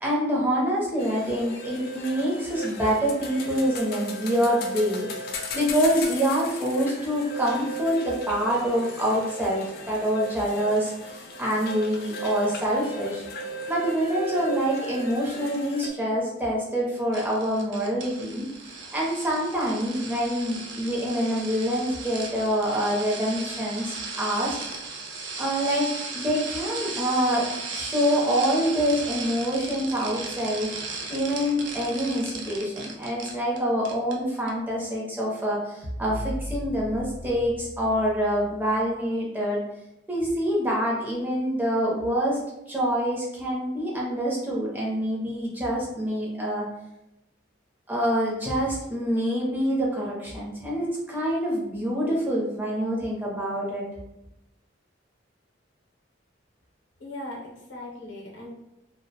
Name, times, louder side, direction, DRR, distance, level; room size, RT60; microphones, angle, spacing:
voice 1, 0.0-5.1 5.5-13.2 13.7-18.5 18.9-24.6 25.4-27.5 27.7-39.6 40.1-42.4 42.7-46.7 47.9-53.9, equal, 10° right, -5 dB, 0.5 m, -26 dB
sound 1, 1.0-15.9, right 1 dB, 55° left, 0.3 m, -36 dB
sound 2, 17.1-33.6 33.8-34.1 34.5-34.6, right 4 dB, 65° right, 0.4 m, -36 dB
sound 3, 35.8-38.9, equal, 40° right, 0.8 m, -37 dB
voice 2, 57.0-58.5, left 1 dB, 70° left, -3 dB, 0.7 m, -39 dB
2.4 x 2.0 x 2.7 m, 0.88 s
head